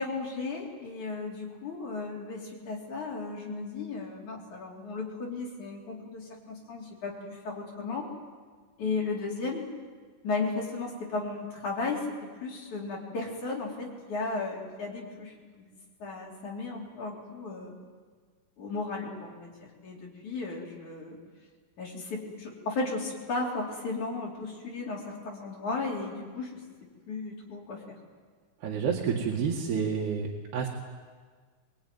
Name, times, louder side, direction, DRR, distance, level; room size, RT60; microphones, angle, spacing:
voice 1, 0.0-8.1 8.8-9.7 10.2-15.6 16.0-17.8 18.6-21.2 21.8-26.6 27.1-28.0, left 3 dB, 45° left, -3 dB, 5.2 m, -35 dB
voice 2, 28.6-30.7, right 6 dB, 70° right, -3 dB, 4.0 m, -29 dB
24.0 x 23.0 x 9.5 m, 1.6 s
omnidirectional pair, 5.0 m